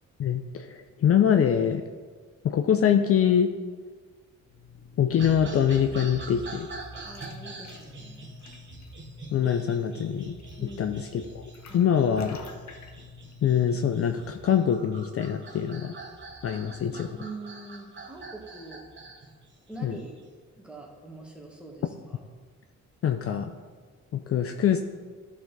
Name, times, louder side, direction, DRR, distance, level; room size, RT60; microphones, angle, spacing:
voice 1, 0.2-1.8 2.4-3.5 5.0-6.7 9.3-11.4 11.7-12.4 13.4-16.0 16.4-17.1 19.8-20.0 23.0-23.5 24.1-24.8, left 8 dB, 50° left, 7 dB, 0.5 m, -24 dB
sound 1, 4.5-14.5, left 4 dB, 70° left, 1.0 m, -49 dB
sound 2, 5.1-20.3, right 3 dB, 40° right, 1.2 m, -44 dB
voice 2, 7.0-8.4 10.6-10.9 11.7-11.9 16.5-18.8 19.7-20.1 20.5-22.2, right 2 dB, 5° right, -1 dB, 1.6 m, -44 dB
11.5 x 4.2 x 4.0 m, 1.5 s
cardioid pair, 90°, 29 cm